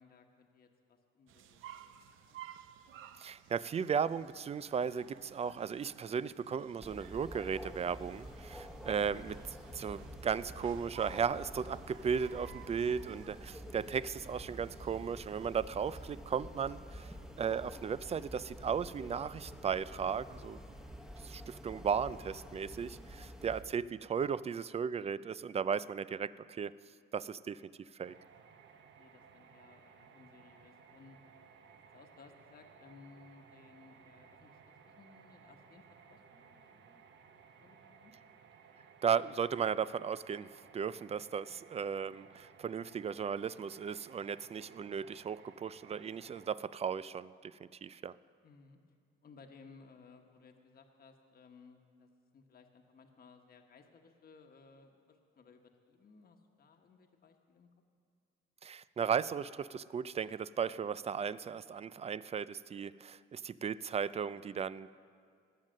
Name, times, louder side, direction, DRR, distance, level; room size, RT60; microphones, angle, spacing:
voice 1, 0.0-2.4 23.4-23.5 29.0-31.2 31.7-37.0 37.6-38.1 48.4-48.8 49.2-57.7 64.4-64.5, left 4 dB, 50° left, 4 dB, 1.2 m, -60 dB
sound 1, 1.3-16.1, right 10 dB, 85° right, 0.6 m, -56 dB
voice 2, 3.2-20.6 21.2-26.7 27.1-27.6 28.0-28.1 39.0-48.1 58.6-64.9, right 7 dB, 30° right, 17 dB, 0.4 m, -36 dB
sound 2, 6.8-23.6, equal, ahead, 1.1 m, -49 dB
sound 3, 28.0-46.5, right 6 dB, 65° right, 1.0 m, -60 dB
19.5 x 7.5 x 6.4 m, 2.2 s
cardioid pair, 90°, 20 cm